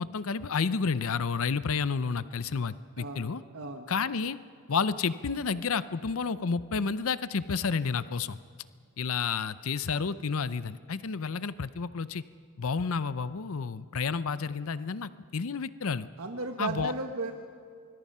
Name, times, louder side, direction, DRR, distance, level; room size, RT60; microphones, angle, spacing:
voice 1, 0.0-3.4 3.9-4.4 4.7-8.4 9.0-12.2 12.6-16.1 16.6-16.9, left 5 dB, 65° left, 15 dB, 0.6 m, -30 dB
voice 2, 3.0-3.9 16.2-17.3, right 3 dB, 70° right, 4 dB, 1.4 m, -35 dB
25.0 x 21.5 x 5.6 m, 2.3 s
head